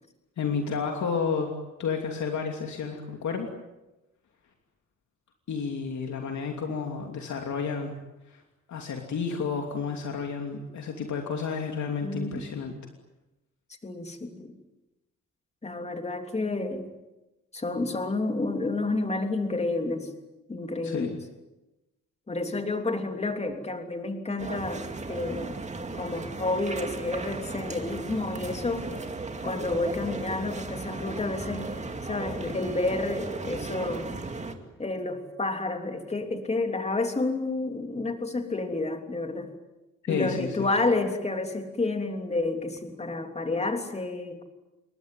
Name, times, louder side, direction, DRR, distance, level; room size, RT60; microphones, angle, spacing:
voice 1, 0.4-1.5 1.8-3.5 5.5-7.9 8.3-8.4 8.7-12.7 20.8-21.2 40.0-40.7, left 5 dB, 70° left, 3 dB, 2.9 m, -31 dB
voice 2, 12.0-12.4 13.8-14.5 15.6-16.9 17.5-20.1 20.5-21.2 22.3-25.5 25.9-28.9 29.4-31.7 32.0-34.1 34.8-39.5 40.1-44.4, left 2 dB, 20° left, 5 dB, 3.2 m, -30 dB
sound 1, 24.4-34.5, right 3 dB, 25° right, 2.3 m, -36 dB
28.0 x 22.5 x 9.4 m, 1.0 s
wide cardioid pair, 175°, 30 cm